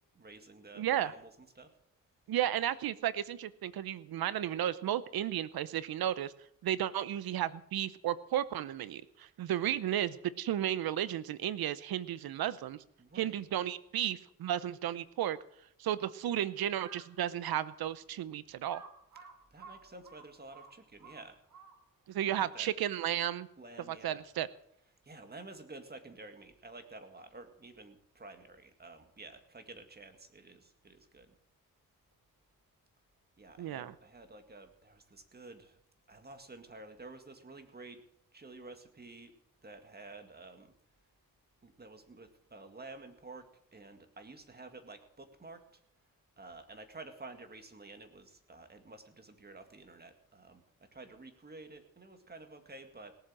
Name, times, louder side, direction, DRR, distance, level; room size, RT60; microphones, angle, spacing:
voice 1, 0.1-1.7 13.0-13.5 19.5-21.4 22.3-22.7 23.6-24.3 25.0-31.4 33.4-35.8 36.1-38.0 38.3-39.3 39.6-40.7 41.6-45.8 46.4-53.2, right 3 dB, 25° right, 7 dB, 2.0 m, -51 dB
voice 2, 0.8-1.1 2.3-6.3 6.6-12.8 13.2-15.4 15.8-18.8 22.1-23.5 23.9-24.5 33.6-33.9, right 11 dB, 80° right, 16 dB, 0.8 m, -33 dB
Crow, 16.8-17.2 17.8-17.9 18.6-22.1, right 5 dB, 60° right, 2.2 m, -53 dB
18.0 x 7.9 x 7.4 m, 0.74 s
cardioid pair, 95°, 36 cm